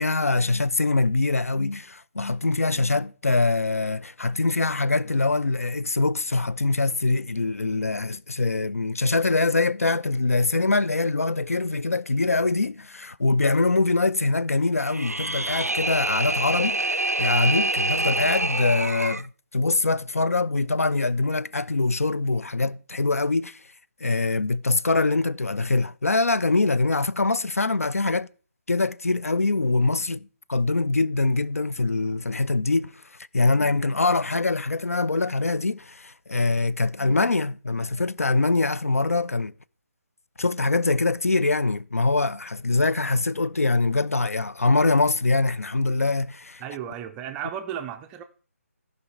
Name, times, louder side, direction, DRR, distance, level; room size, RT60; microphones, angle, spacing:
voice 1, 0.0-23.6 24.0-28.3 28.7-32.9 33.3-39.5 40.4-46.6, left 3 dB, 70° left, 0.4 m, -23 dB
sound 1, 14.8-19.3, right 2 dB, 90° right, 0.4 m, -26 dB
voice 2, 46.6-48.2, right 9 dB, 10° right, 0.4 m, -34 dB
14.5 x 5.2 x 4.0 m
figure-of-eight pair, 145°, 8 cm